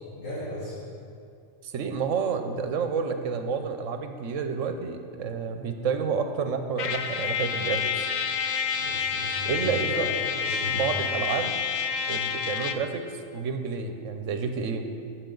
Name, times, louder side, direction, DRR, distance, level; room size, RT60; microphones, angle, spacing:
voice 1, 0.1-0.7 8.7-10.1 10.4-10.8, left 1 dB, 80° left, -11 dB, 2.7 m, -36 dB
voice 2, 1.6-7.8 9.5-10.1 10.7-11.5 12.1-13.0 13.3-14.9, right 6 dB, 80° right, 7 dB, 1.1 m, -29 dB
Trumpet, 6.8-12.9, left 7 dB, 60° left, 0.4 m, -29 dB
15.5 x 6.3 x 3.9 m, 2.4 s
omnidirectional pair, 1.3 m